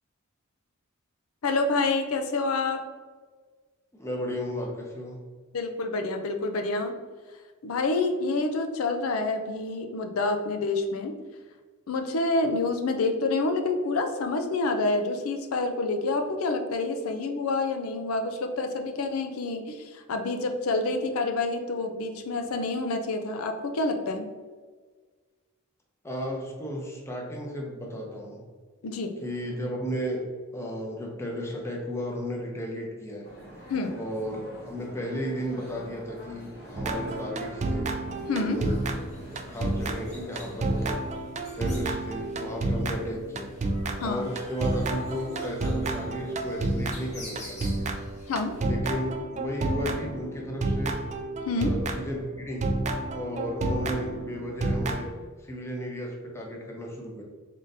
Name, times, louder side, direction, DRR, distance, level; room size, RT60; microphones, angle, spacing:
voice 1, 1.4-2.8 5.5-6.9 7.6-11.2 11.9-24.3 28.8-29.2 33.7-33.9 38.3-38.6 44.0-44.2 48.3-48.5 51.4-51.8, left 3 dB, 85° left, 6 dB, 0.5 m, -28 dB
voice 2, 3.9-5.2 26.0-28.4 29.2-33.3 34.0-37.9 38.4-38.9 39.5-41.0 41.6-43.6 44.0-47.9 48.6-51.0 51.6-52.8 53.1-55.1 55.4-57.2, equal, 15° left, -1 dB, 0.6 m, -34 dB
sound 1, 33.2-40.9, right 1 dB, 50° left, 1.3 m, -46 dB
sound 2, 36.8-52.2 52.6-55.1, right 2 dB, 35° right, 0.4 m, -30 dB
sound 3, 38.5-48.6, left 1 dB, 30° left, 0.9 m, -48 dB
3.7 x 3.7 x 2.6 m, 1.5 s
head